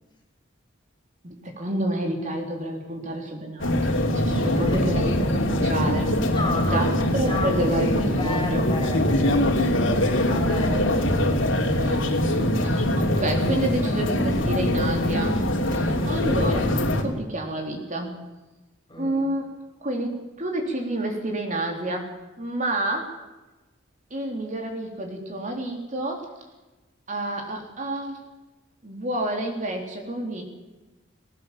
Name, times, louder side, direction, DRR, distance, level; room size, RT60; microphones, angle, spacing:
voice 1, 1.2-6.2 6.5-6.9 7.1-8.7 9.7-10.1 11.8-18.2 19.0-19.4 19.8-22.1 22.4-23.1 24.1-26.3 27.1-28.2 28.8-30.4, right 1 dB, 40° right, 2 dB, 3.6 m, -29 dB
sound 1, 3.6-17.0, left 1 dB, 75° left, 3.2 m, -23 dB
voice 2, 6.3-6.9 7.2-9.9 10.3-11.8 18.9-19.3, left 2 dB, 25° left, 3 dB, 4.6 m, -34 dB
19.0 x 18.5 x 7.5 m, 1.1 s
head